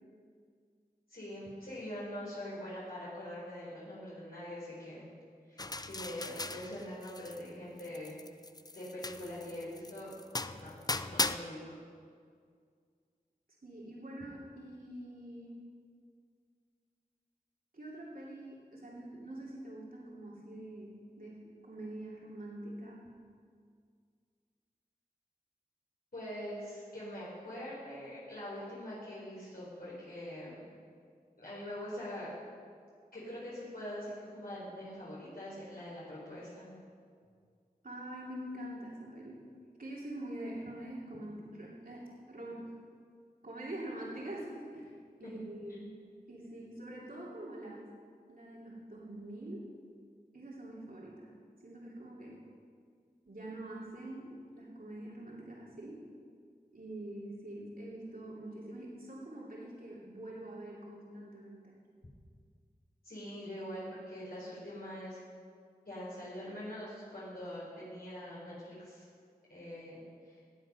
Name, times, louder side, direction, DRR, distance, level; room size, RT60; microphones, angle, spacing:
voice 1, 1.1-5.1 5.5-8.2 8.7-10.1 10.6-10.7 11.1-11.8 26.1-30.7 31.4-32.3 33.1-36.7 45.2-45.3 63.0-65.2 65.9-69.1 69.5-70.4, left 1 dB, 75° left, -9 dB, 4.5 m, -43 dB
sound 1, 5.6-7.5 7.8-11.4, left 2 dB, 25° left, 0.5 m, -38 dB
voice 2, 13.6-15.7 17.7-23.0 37.8-39.4 39.8-42.7 43.4-45.9 46.3-47.9 48.3-49.7 50.3-51.3 51.6-52.4 53.2-56.0 56.7-61.8, right 1 dB, 65° right, -5 dB, 2.8 m, -45 dB
17.5 x 8.5 x 5.6 m, 2.1 s
wide cardioid pair, 50°, 16 cm